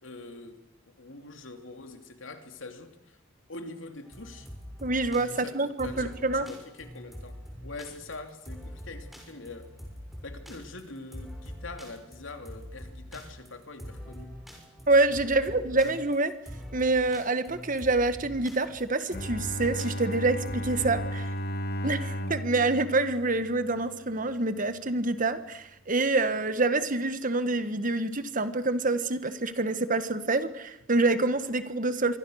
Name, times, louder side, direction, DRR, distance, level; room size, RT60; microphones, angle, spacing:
voice 1, 0.0-0.6 1.0-3.2 3.5-4.5 5.3-9.7 10.2-14.3 15.3-15.8, left 3 dB, 80° left, 6 dB, 3.0 m, -44 dB
sound 1, 4.1-21.1, equal, ahead, 6.4 m, -44 dB
voice 2, 4.8-6.5 14.9-16.3 16.7-21.3 21.8-32.2, right 2 dB, 45° right, 11 dB, 1.6 m, -26 dB
Bowed string instrument, 19.1-24.1, equal, 50° left, 2.1 m, -35 dB
26.0 x 23.5 x 6.5 m, 0.88 s
head